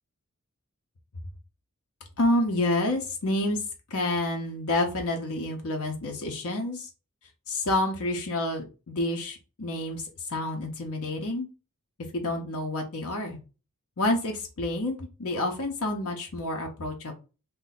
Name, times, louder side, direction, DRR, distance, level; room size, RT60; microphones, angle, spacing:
voice 1, 2.2-3.6 3.9-6.9 7.5-11.5 12.1-13.4 14.0-17.1, left 1 dB, 75° left, 2 dB, 0.7 m, -28 dB
2.6 x 2.2 x 3.9 m, 0.33 s
head